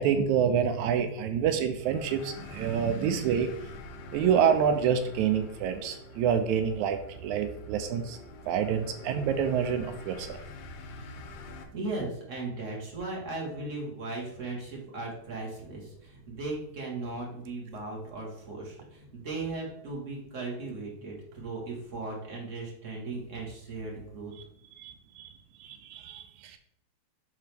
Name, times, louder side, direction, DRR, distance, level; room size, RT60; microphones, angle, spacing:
voice 1, 0.0-3.5 4.1-8.2 8.5-10.4 24.8-25.3 25.6-26.6, right 8 dB, 85° right, 8 dB, 1.9 m, -27 dB
sound 1, 1.8-11.6, left 3 dB, 75° left, 2.0 m, -46 dB
voice 2, 11.7-24.3, right 3 dB, 30° right, -2 dB, 1.6 m, -37 dB
9.4 x 3.9 x 3.5 m, 0.73 s
omnidirectional pair, 3.4 m